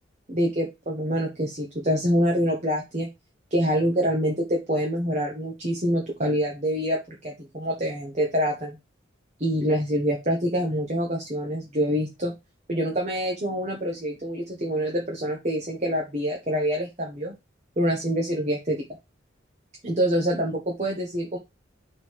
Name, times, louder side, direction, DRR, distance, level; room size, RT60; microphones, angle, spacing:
voice 1, 0.3-3.1 3.5-8.8 9.4-12.3 12.7-17.3 17.8-18.8 19.8-21.4, equal, 35° right, 0 dB, 1.3 m, -26 dB
5.6 x 3.8 x 4.8 m, 0.23 s
head